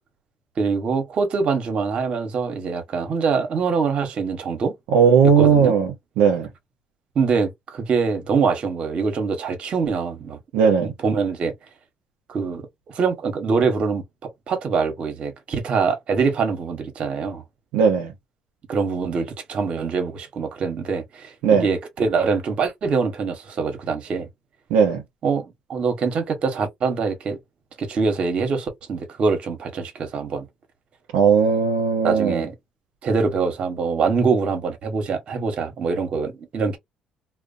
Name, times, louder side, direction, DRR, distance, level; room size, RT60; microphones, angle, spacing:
voice 1, 0.6-4.7 5.4-5.8 7.1-10.4 10.8-11.5 12.3-12.6 12.9-17.4 18.7-21.3 21.6-24.3 25.2-27.4 27.8-30.4 32.0-32.5 33.0-36.8, right 5 dB, 55° right, 1.0 m, -24 dB
voice 2, 4.9-5.9 6.2-6.5 10.5-10.9 17.7-18.1 21.4-21.7 24.7-25.0 31.1-32.5, right 6 dB, 85° right, 0.6 m, -17 dB
2.4 x 2.1 x 2.5 m
supercardioid pair, 75°, 2 cm